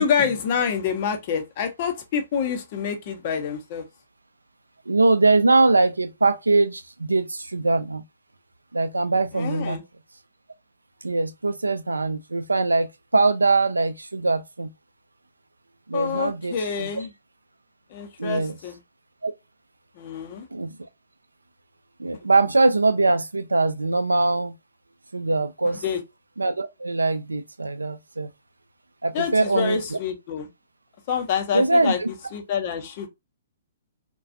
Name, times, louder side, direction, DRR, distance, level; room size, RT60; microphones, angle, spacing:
voice 1, 0.0-3.9 9.3-9.8 15.9-17.1 17.9-18.8 19.9-20.5 25.6-26.0 29.1-30.5 31.1-32.0 32.3-33.1, left 7 dB, 40° left, 0.6 m, -27 dB
voice 2, 4.9-8.0 8.7-9.8 11.0-14.7 15.9-16.9 18.2-18.6 19.2-19.3 20.5-20.8 22.0-24.6 25.1-25.8 26.4-28.3 29.0-29.8 31.5-32.1, right 3 dB, 80° right, 0.3 m, -22 dB
2.4 x 2.2 x 2.6 m
figure-of-eight pair, 120°, 0 cm